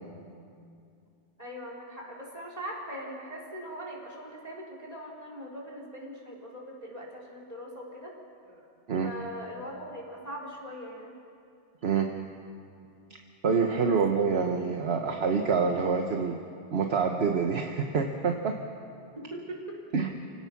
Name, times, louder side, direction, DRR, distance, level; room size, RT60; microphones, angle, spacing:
voice 1, 1.4-8.2 8.4-8.6 9.0-11.1 13.8-14.0 19.2-19.8, equal, 35° right, -2 dB, 4.3 m, -41 dB
voice 2, 13.4-16.4 16.7-18.6 19.9-20.1, right 5 dB, 65° right, 3 dB, 1.3 m, -26 dB
28.5 x 17.5 x 6.0 m, 2.4 s
omnidirectional pair, 1.1 m